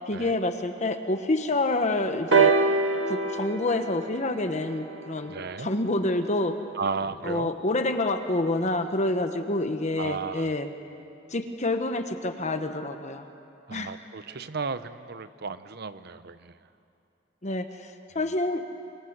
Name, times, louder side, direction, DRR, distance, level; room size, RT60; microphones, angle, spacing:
voice 1, 0.1-2.5 3.0-5.3 5.6-6.5 7.2-10.7 11.3-13.3 13.7-13.9 17.4-18.6, left 2 dB, 40° left, 7 dB, 1.1 m, -27 dB
sound 1, 2.3-6.1 7.1-7.2, right 4 dB, 75° right, 1.4 m, -25 dB
voice 2, 5.3-5.7 6.8-7.5 10.0-10.6 13.7-16.5, right 4 dB, 55° right, 13 dB, 0.8 m, -34 dB
25.5 x 23.0 x 8.0 m, 2.7 s
head